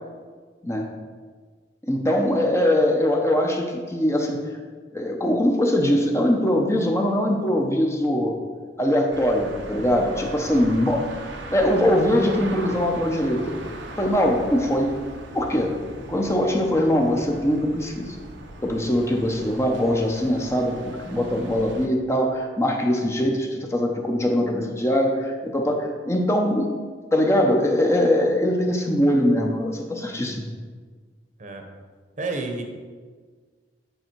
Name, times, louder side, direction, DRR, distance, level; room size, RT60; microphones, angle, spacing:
voice 1, 1.9-4.4 4.9-8.4 8.8-11.0 11.5-13.5 14.0-14.9 15.3-15.7 16.1-18.2 18.6-26.7 27.1-30.4, left 1 dB, 15° left, 1 dB, 0.7 m, -22 dB
sound 1, 9.1-21.9, right 2 dB, 75° right, 0.8 m, -39 dB
voice 2, 10.1-10.9 31.4-31.7 32.2-32.6, right 3 dB, 40° right, 3 dB, 1.0 m, -33 dB
9.1 x 5.4 x 4.6 m, 1.5 s
head